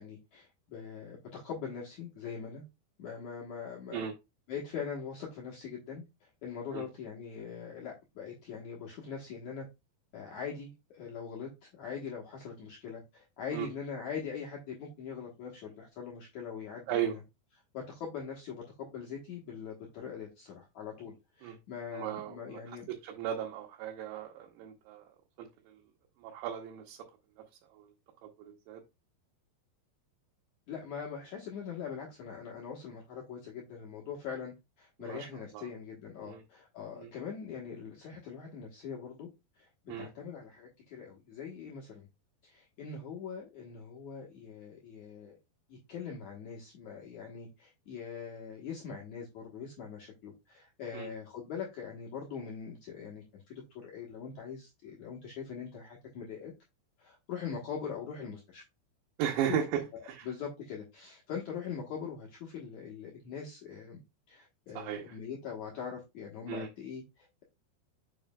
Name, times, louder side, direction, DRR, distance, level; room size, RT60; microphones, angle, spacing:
voice 1, 0.0-2.6 3.0-4.1 4.5-9.7 10.1-17.2 17.7-22.9 30.7-39.3 39.6-42.1 42.4-45.4 45.7-56.5 57.0-58.6 59.4-59.6 60.2-64.0 64.3-67.4, left 6 dB, 75° left, -2 dB, 1.7 m, -42 dB
voice 2, 21.9-22.6 22.9-25.0 25.4-25.5 26.2-27.0 27.7-27.9 28.2-28.8 35.0-35.3 35.5-35.7 36.2-36.4 37.0-37.1 39.9-40.1 50.9-51.1 59.2-60.3 64.8-65.2 66.5-66.7, right 10 dB, 85° right, 1 dB, 3.1 m, -36 dB
7.2 x 5.9 x 2.2 m, 0.23 s
omnidirectional pair, 5.0 m